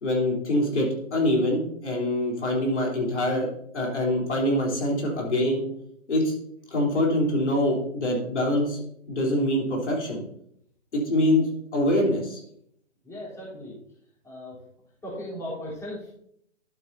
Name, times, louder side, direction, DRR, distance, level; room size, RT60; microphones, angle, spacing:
voice 1, 0.0-3.5 3.7-5.6 6.1-6.3 6.7-8.8 9.1-10.2 10.9-11.4 11.7-12.4, left 1 dB, 65° left, -2 dB, 3.8 m, -24 dB
voice 2, 13.0-13.8 14.2-14.6 15.0-16.1, left 1 dB, 5° left, -8 dB, 3.8 m, -37 dB
12.0 x 8.5 x 2.8 m, 0.70 s
figure-of-eight pair, 135°, 37 cm